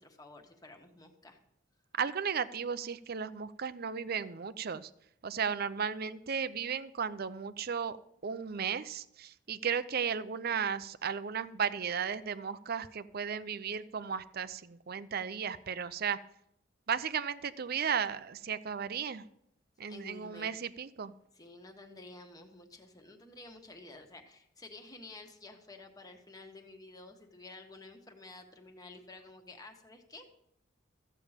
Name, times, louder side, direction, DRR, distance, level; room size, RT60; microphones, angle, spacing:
voice 1, 0.0-1.4 19.9-20.5 21.3-30.3, left 2 dB, 20° left, 3 dB, 1.4 m, -51 dB
voice 2, 2.0-4.9 5.2-8.0 8.2-16.2 16.9-19.3 19.8-21.1, right 7 dB, 55° right, 14 dB, 0.6 m, -35 dB
14.5 x 8.6 x 5.0 m, 0.75 s
head